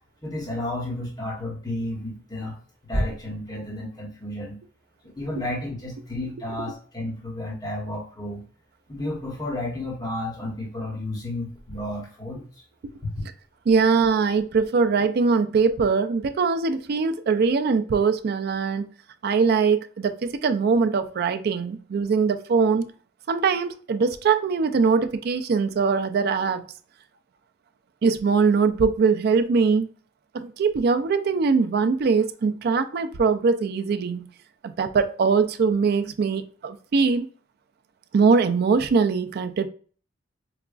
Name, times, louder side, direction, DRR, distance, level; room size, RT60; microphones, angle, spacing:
voice 1, 0.2-2.6 2.9-4.6 5.0-8.4 8.9-12.4, left 1 dB, 20° left, 1.1 m, -31 dB
voice 2, 13.7-18.9 19.2-22.9 23.3-26.6 28.0-29.9 30.3-34.3 34.6-37.3 38.1-39.7, right 5 dB, 55° right, 0.3 m, -22 dB
4.8 x 2.3 x 2.4 m
head